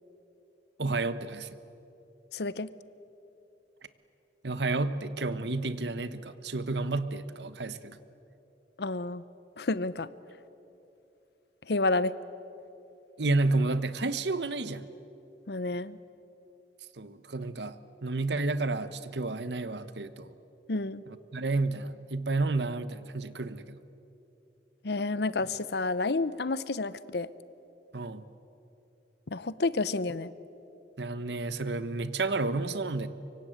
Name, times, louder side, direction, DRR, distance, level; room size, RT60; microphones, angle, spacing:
voice 1, 0.8-1.5 4.4-8.0 13.2-14.8 17.0-17.8 18.0-20.3 21.1-23.8 27.9-28.2 31.0-33.1, right 3 dB, 70° right, 13 dB, 1.1 m, -31 dB
voice 2, 2.3-2.7 8.8-9.2 9.6-10.1 11.7-12.1 15.5-16.0 20.7-21.0 24.8-27.3 29.3-30.3, left 3 dB, 65° left, 17 dB, 0.8 m, -30 dB
24.5 x 24.0 x 9.0 m, 2.9 s
head